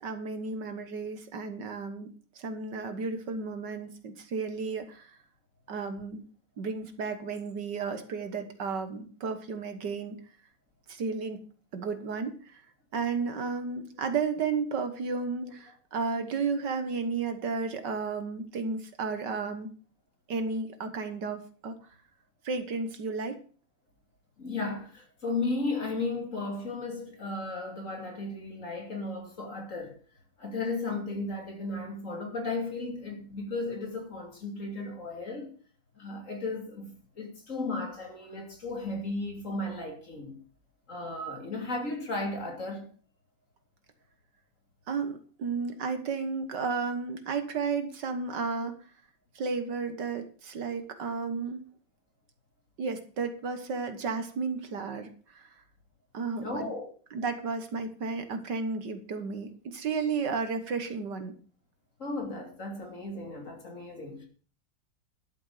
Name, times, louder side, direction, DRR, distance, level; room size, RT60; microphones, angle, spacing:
voice 1, 0.0-2.1 2.4-5.2 5.7-6.2 6.6-10.2 10.9-11.4 11.7-12.6 12.9-19.7 20.3-21.8 22.4-23.4 44.9-48.7 49.4-51.6 52.8-55.5 56.1-56.7 57.1-61.4, right 4 dB, 65° right, 1.9 m, -33 dB
voice 2, 24.4-30.0 30.4-35.5 36.0-40.4 40.9-42.9 56.4-56.9 62.0-64.3, left 2 dB, 40° left, 3.1 m, -35 dB
12.0 x 7.2 x 6.4 m
omnidirectional pair, 2.0 m